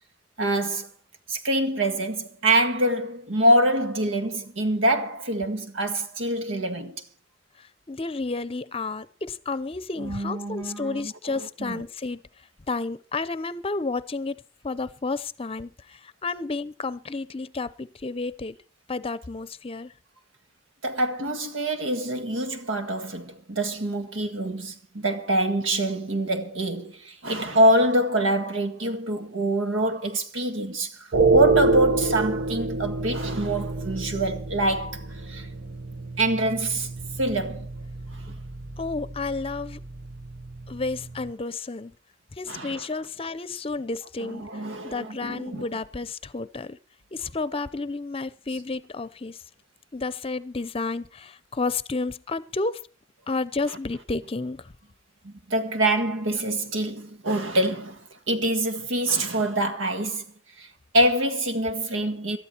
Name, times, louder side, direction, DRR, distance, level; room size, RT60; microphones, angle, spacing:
voice 1, 0.4-0.9 1.3-7.0 10.0-11.3 11.6-11.8 20.8-35.5 36.2-36.9 37.2-37.7 38.1-38.3 42.5-42.9 44.2-45.6 55.2-60.2 60.6-60.7 60.9-62.4, right 1 dB, 85° right, 1.9 m, -25 dB
voice 2, 7.6-12.2 12.7-14.4 14.6-18.6 18.9-19.9 38.8-39.8 40.7-41.9 42.3-46.8 47.1-49.4 49.9-52.8 53.3-54.7, left 3 dB, 30° left, 0.7 m, -31 dB
sound 1, 31.1-41.3, right 3 dB, 70° right, 1.5 m, -28 dB
18.5 x 13.0 x 4.5 m
head